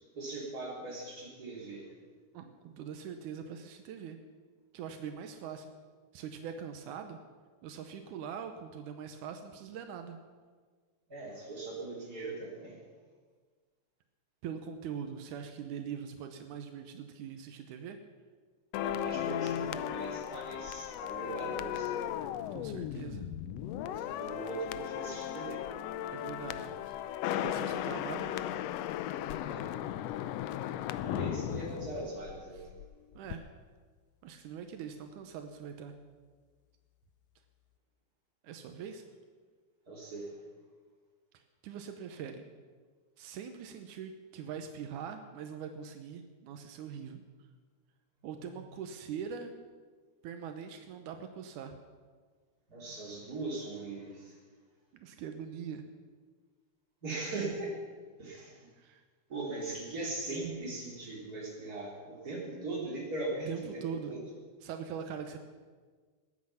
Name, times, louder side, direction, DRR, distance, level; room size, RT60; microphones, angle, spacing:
voice 1, 0.1-2.2 11.1-12.8 18.7-22.0 23.8-25.6 29.5-29.7 31.0-32.7 39.9-40.4 48.4-48.6 52.7-54.4 57.0-57.8 58.2-58.7 59.3-64.2, right 2 dB, 30° right, -4 dB, 4.0 m, -40 dB
voice 2, 2.3-4.2 4.7-5.7 6.1-7.2 7.6-10.2 14.4-18.0 22.5-23.3 26.1-26.9 27.3-28.4 33.2-33.5 34.2-35.9 38.4-39.0 41.3-42.5 43.2-47.2 48.2-49.6 50.2-51.8 55.0-55.8 58.6-59.0 63.5-64.2 64.6-65.4, right 7 dB, 85° right, 6 dB, 2.4 m, -42 dB
sound 1, 18.7-32.9 33.1-33.4, left 11 dB, 85° left, 1.4 m, -36 dB
20.5 x 8.7 x 5.7 m, 1.5 s
omnidirectional pair, 3.5 m